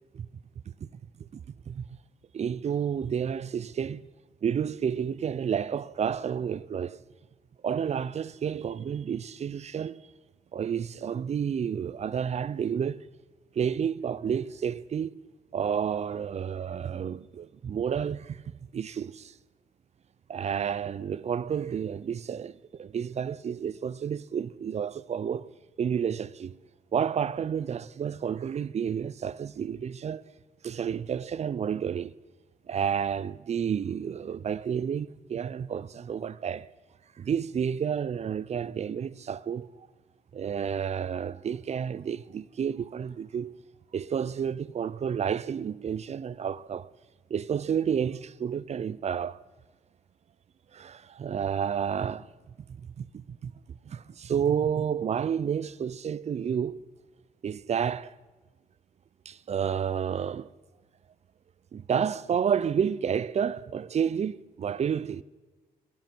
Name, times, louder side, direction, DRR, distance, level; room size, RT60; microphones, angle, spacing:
voice 1, 1.2-1.9 2.3-4.1 4.4-7.0 7.6-10.0 10.5-13.1 13.5-15.2 15.5-18.4 18.7-19.3 20.3-25.5 25.8-26.6 26.9-30.2 30.6-32.2 32.7-36.7 37.2-39.7 40.3-43.6 43.9-46.9 47.3-49.4 50.7-52.3 52.8-56.8 57.4-58.1 59.3-60.5 61.7-65.2, right 7 dB, 45° right, 0.5 m, -30 dB
20.0 x 14.5 x 4.5 m
cardioid pair, 90°, 16 cm